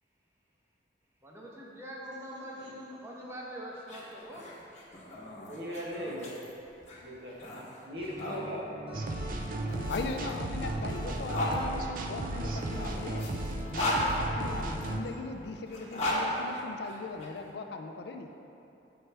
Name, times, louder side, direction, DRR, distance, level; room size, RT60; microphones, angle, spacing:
voice 1, 1.2-4.4 8.4-8.5, equal, 15° right, -4 dB, 0.8 m, -43 dB
sound 1, 3.7-8.4 9.4-11.6 12.5-14.8 15.6-17.3, left 1 dB, 40° left, 1.0 m, -36 dB
voice 2, 5.5-6.3 7.0-7.3 7.8-8.6, equal, 70° right, -4 dB, 1.1 m, -38 dB
Acoustic guitar, 8.0-15.1, right 1 dB, 30° right, 1.3 m, -45 dB
sound 2, 8.9-15.0, right 1 dB, 50° right, 0.4 m, -35 dB
voice 3, 9.9-13.3 13.7-18.3, left 3 dB, 60° left, 5 dB, 0.4 m, -39 dB
7.6 x 4.4 x 3.3 m, 2.9 s
head